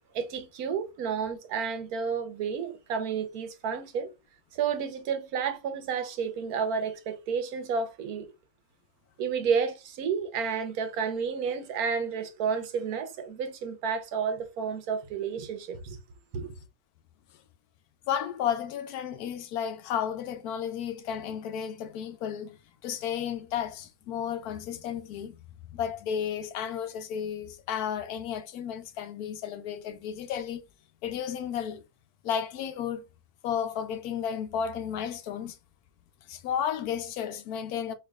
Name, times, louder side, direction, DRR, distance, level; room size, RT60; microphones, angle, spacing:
voice 1, 0.1-4.1 4.5-8.3 9.2-16.0 16.3-16.5, right 6 dB, 80° right, 1.2 m, -31 dB
voice 2, 18.1-25.4 25.7-30.6 31.0-31.8 32.2-33.0 33.4-35.6 36.3-37.9, left 8 dB, 85° left, 1.1 m, -33 dB
4.5 x 2.7 x 2.3 m
omnidirectional pair, 1.6 m